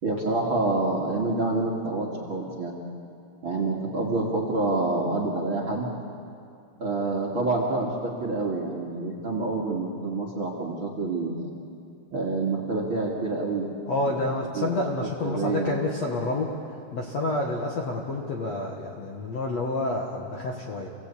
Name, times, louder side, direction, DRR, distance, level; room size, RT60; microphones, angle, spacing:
voice 1, 0.0-2.7 3.4-5.9 6.8-11.5 12.1-13.7 14.0-14.2 14.5-14.8 15.2-15.8, right 3 dB, 35° right, -1 dB, 2.5 m, -27 dB
voice 2, 13.9-16.5 16.9-20.9, left 2 dB, 55° left, -1 dB, 2.1 m, -29 dB
28.5 x 17.5 x 8.6 m, 2.4 s
omnidirectional pair, 5.0 m